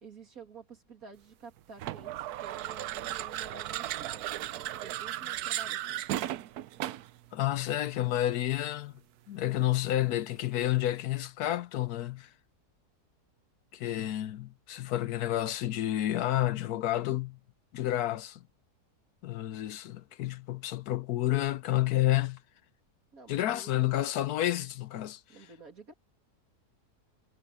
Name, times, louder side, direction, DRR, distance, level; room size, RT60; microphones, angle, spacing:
voice 1, 0.0-6.1 23.1-23.8 25.3-25.9, right 4 dB, 60° right, 3.4 m, -50 dB
sound 1, 1.8-7.2, right 13 dB, 75° right, 1.1 m, -35 dB
voice 2, 7.3-8.9 9.3-12.3 13.7-17.4 17.7-18.4 19.2-22.4 23.3-25.2, left 14 dB, 75° left, 1.2 m, -30 dB
omnidirectional pair, 1.7 m